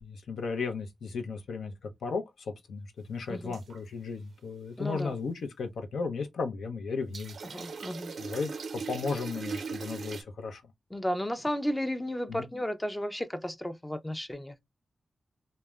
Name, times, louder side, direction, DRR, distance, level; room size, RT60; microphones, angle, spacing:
voice 1, 0.0-7.4 8.2-10.6 12.3-12.5, left 4 dB, 85° left, 0.5 m, -35 dB
sound 1, 3.5-3.8 7.1-10.2, right 5 dB, 75° right, 0.4 m, -39 dB
voice 2, 4.8-5.2 7.5-8.1 10.9-14.6, equal, 15° left, 0.4 m, -33 dB
3.1 x 2.0 x 2.3 m
cardioid pair, 55°, 0 cm